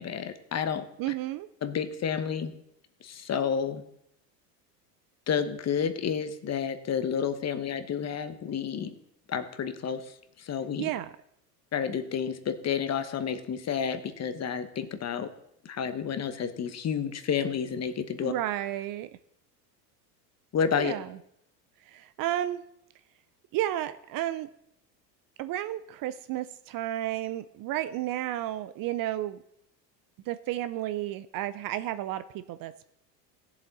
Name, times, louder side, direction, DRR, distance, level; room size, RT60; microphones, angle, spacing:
voice 1, 0.0-1.1 1.6-2.5 3.0-3.8 5.3-8.9 9.3-10.0 10.4-10.9 11.7-15.3 15.6-18.3 20.5-20.9, left 7 dB, 30° left, 11 dB, 1.1 m, -30 dB
voice 2, 1.0-1.5 10.8-11.1 18.2-19.1 20.8-21.2 21.9-22.6 23.5-24.5 25.4-29.4 30.3-32.9, right 13 dB, 45° right, 13 dB, 0.6 m, -32 dB
16.0 x 7.3 x 4.1 m, 0.75 s
hypercardioid pair, 85°, 49 cm